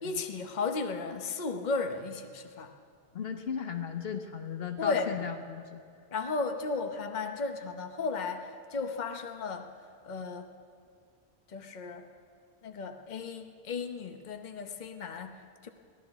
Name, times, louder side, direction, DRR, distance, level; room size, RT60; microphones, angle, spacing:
voice 1, 0.0-2.7 4.8-5.2 6.1-9.7 10.0-10.5 11.5-12.1 12.6-15.7, left 4 dB, 45° left, 6 dB, 1.0 m, -35 dB
voice 2, 3.1-5.8, left 7 dB, 65° left, 6 dB, 1.1 m, -36 dB
22.5 x 17.0 x 3.6 m, 2.3 s
omnidirectional pair, 1.1 m